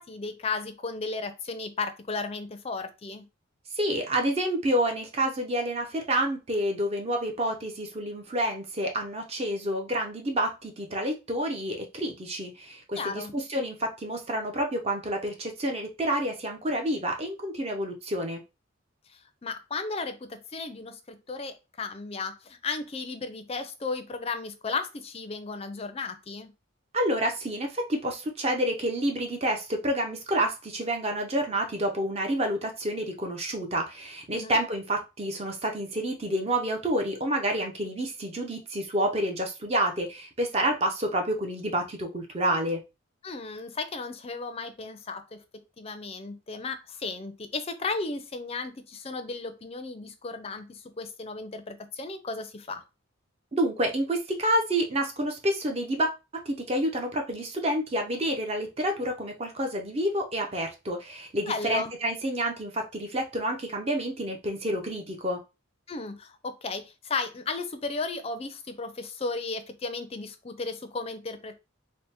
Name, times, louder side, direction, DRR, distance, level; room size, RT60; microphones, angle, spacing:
voice 1, 0.0-3.3 13.0-13.3 19.1-26.5 34.3-34.6 43.2-52.8 61.5-61.9 65.9-71.6, left 4 dB, 30° left, 0.4 m, -35 dB
voice 2, 3.7-18.4 26.9-42.8 53.5-65.4, right 1 dB, 30° right, 0.5 m, -29 dB
3.4 x 2.1 x 4.2 m
head